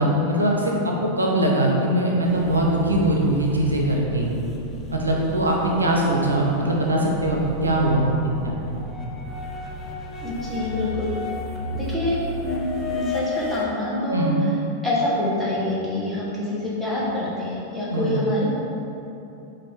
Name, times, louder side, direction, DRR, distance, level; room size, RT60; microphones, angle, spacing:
voice 1, 0.0-4.3 4.9-8.1 8.4-8.8 14.1-14.4 17.9-18.2, right 1 dB, 80° right, -1 dB, 0.5 m, -21 dB
sound 1, 2.2-13.7, left 2 dB, 20° left, 0.6 m, -33 dB
voice 2, 10.2-11.1 11.7-12.6 12.9-14.3 14.8-18.5, left 1 dB, 5° left, -8 dB, 1.1 m, -26 dB
5.0 x 2.5 x 3.5 m, 2.8 s
figure-of-eight pair, 90°, 0 cm